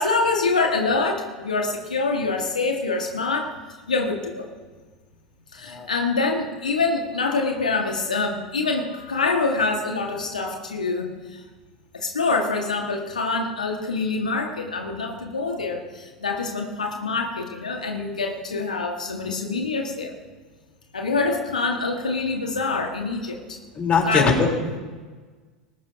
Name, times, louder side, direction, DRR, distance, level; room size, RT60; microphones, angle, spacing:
voice 1, 0.0-3.5 3.9-4.5 5.5-11.4 11.9-20.1 20.9-23.6 24.1-24.3, left 3 dB, 80° left, 2 dB, 1.7 m, -25 dB
voice 2, 23.7-24.8, left 4 dB, 30° left, 1 dB, 3.7 m, -21 dB
20.0 x 16.0 x 2.8 m, 1.4 s
figure-of-eight pair, 80°, 4 cm